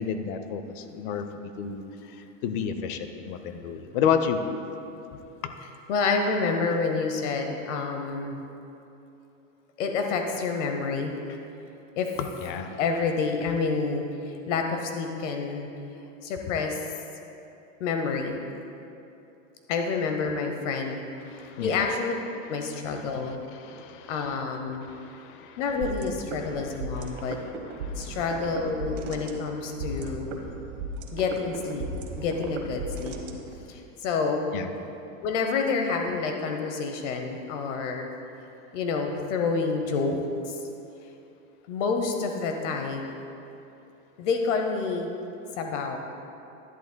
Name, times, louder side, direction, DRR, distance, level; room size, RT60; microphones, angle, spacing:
voice 1, 0.0-2.2 2.4-4.4 5.4-5.5 12.4-12.8 21.3-21.8 23.6-24.1 24.8-25.6 27.1-27.2 27.8-28.2 34.5-34.7, left 7 dB, 40° left, 8 dB, 0.5 m, -31 dB
voice 2, 5.9-8.4 9.8-11.4 12.0-12.1 12.8-15.7 16.2-16.9 17.8-18.4 19.7-23.4 24.1-24.9 25.6-27.4 27.9-30.3 31.1-31.8 32.2-33.2 33.7-34.5 35.2-38.1 38.7-40.6 41.7-43.1 44.2-45.1 45.6-46.0, left 4 dB, 65° left, 4 dB, 0.9 m, -28 dB
sound 1, 25.8-33.8, right 3 dB, 70° right, 1.2 m, -36 dB
11.0 x 10.5 x 2.2 m, 2.8 s
supercardioid pair, 150°, 40 cm